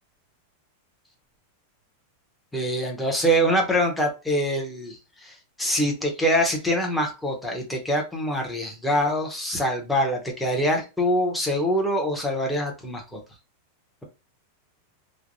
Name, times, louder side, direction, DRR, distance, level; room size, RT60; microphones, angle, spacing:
voice 1, 2.5-13.2, equal, 5° left, 1 dB, 0.9 m, -24 dB
3.2 x 2.2 x 2.6 m, 0.28 s
supercardioid pair, 145°, 0 cm